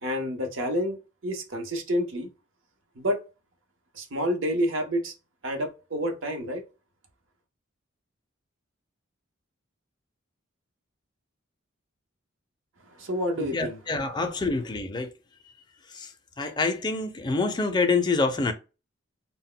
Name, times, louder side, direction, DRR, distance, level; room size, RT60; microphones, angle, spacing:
voice 1, 0.0-2.3 3.0-3.2 3.9-5.1 5.4-6.6 12.8-13.8, equal, 70° right, 0.8 m, -29 dB
voice 2, 13.4-15.1 15.9-16.1 16.4-18.5, left 3 dB, 20° left, 0.4 m, -26 dB
2.1 x 2.1 x 3.7 m
head